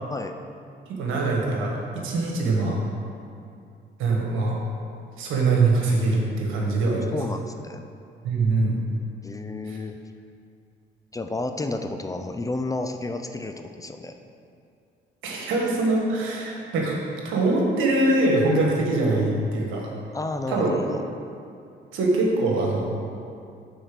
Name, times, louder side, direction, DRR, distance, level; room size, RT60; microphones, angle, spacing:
voice 1, 0.9-2.8 4.0-4.6 5.2-7.1 8.2-8.8 9.7-9.8 15.2-17.0 17.2-19.9 20.5-20.7 21.9-22.8, right 2 dB, 90° right, -1 dB, 1.4 m, -23 dB
voice 2, 6.4-7.9 9.2-10.0 11.1-14.2 20.1-21.0, left 2 dB, 15° left, 6 dB, 0.4 m, -31 dB
6.5 x 4.5 x 6.0 m, 2.5 s
cardioid pair, 90°, 20 cm